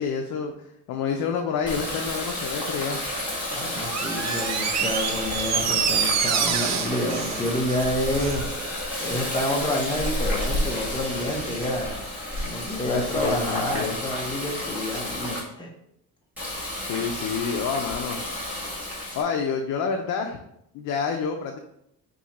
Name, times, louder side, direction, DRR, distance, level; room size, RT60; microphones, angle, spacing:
voice 1, 0.0-3.0 12.9-14.0 16.8-18.2 19.2-20.4 20.7-21.6, left 6 dB, 65° left, 2 dB, 0.5 m, -28 dB
Water tap faucet, 1.6-15.4 16.4-19.2, left 1 dB, 5° right, 1.3 m, -31 dB
voice 2, 3.5-8.4 9.0-12.0 12.4-15.7, left 1 dB, 15° left, 0 dB, 0.7 m, -28 dB
Door, 3.9-8.4 8.8-8.9, right 7 dB, 50° right, 0.4 m, -27 dB
3.7 x 2.8 x 4.1 m, 0.76 s
cardioid pair, 150°, 34 cm